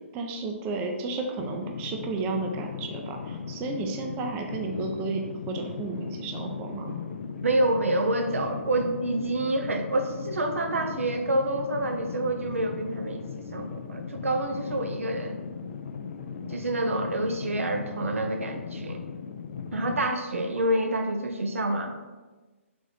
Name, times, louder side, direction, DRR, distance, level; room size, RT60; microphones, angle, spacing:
voice 1, 0.1-7.0, right 3 dB, 25° right, 3 dB, 0.5 m, -32 dB
sound 1, 1.4-20.1, left 6 dB, 55° left, 0.4 m, -38 dB
voice 2, 7.4-13.2 13.5-15.4 16.5-19.0 19.7-21.9, right 1 dB, 75° right, 5 dB, 0.6 m, -27 dB
4.0 x 3.6 x 3.4 m, 1.2 s
figure-of-eight pair, 130°, 7 cm